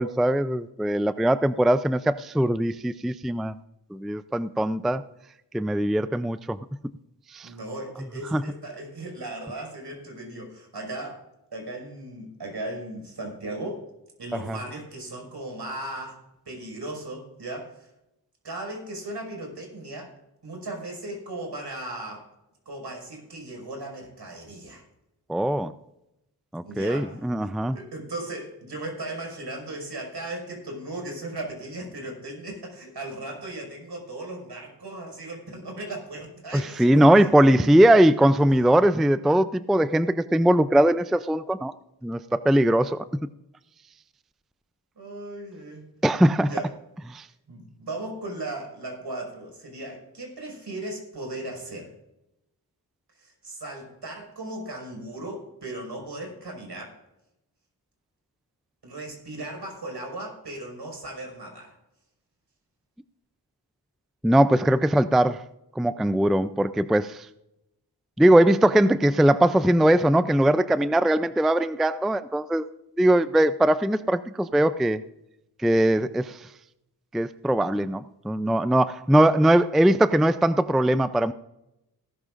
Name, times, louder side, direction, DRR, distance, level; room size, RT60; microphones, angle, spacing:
voice 1, 0.0-3.6 3.9-5.0 5.5-6.6 7.3-7.5 8.3-8.4 14.5-14.6 25.3-25.7 26.5-27.8 36.5-41.7 42.0-43.0 46.0-46.5 47.1-47.3 64.2-65.4 65.8-67.3 68.2-72.7 73.0-75.0 75.6-76.5 77.1-81.3, right 1 dB, ahead, 13 dB, 0.4 m, -21 dB
voice 2, 7.4-11.2 11.5-13.9 14.2-17.9 18.4-20.1 20.4-22.3 22.7-24.8 26.6-37.7 38.4-38.6 45.0-45.9 46.5-46.7 47.5-51.9 53.2-57.0 58.8-61.7, right 2 dB, 70° right, 1 dB, 5.4 m, -37 dB
18.0 x 12.5 x 2.5 m, 0.89 s
cardioid pair, 60°, 41 cm